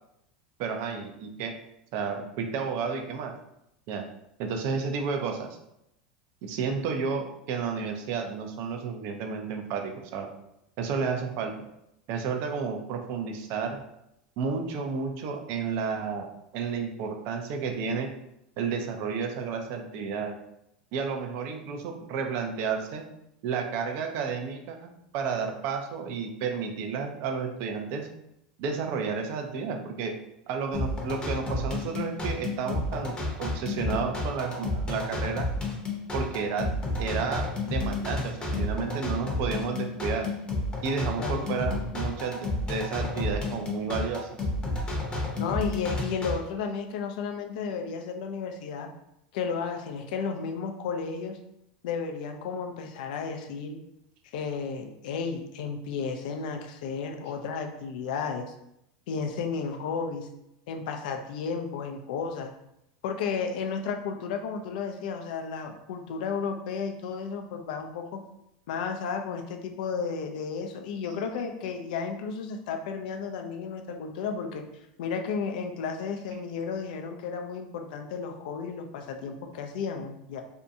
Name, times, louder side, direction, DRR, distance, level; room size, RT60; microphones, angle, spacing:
voice 1, 0.6-1.5 1.9-3.3 3.9-4.0 4.4-5.5 6.4-10.3 10.8-11.5 12.1-13.8 14.4-18.1 18.6-20.4 20.9-23.1 23.4-28.1 28.6-30.1 30.5-35.5 36.1-40.3 40.8-44.3, right 5 dB, 60° right, 4 dB, 0.5 m, -31 dB
sound 1, 30.7-46.3, left 2 dB, 20° left, 0.7 m, -31 dB
voice 2, 45.4-48.9 49.3-51.4 51.8-53.8 54.3-58.5 59.1-60.3 60.7-62.5 63.0-68.2 68.7-74.6 75.0-80.4, left 5 dB, 70° left, 5 dB, 0.4 m, -33 dB
2.6 x 2.2 x 2.6 m, 0.81 s
hypercardioid pair, 105°, 5 cm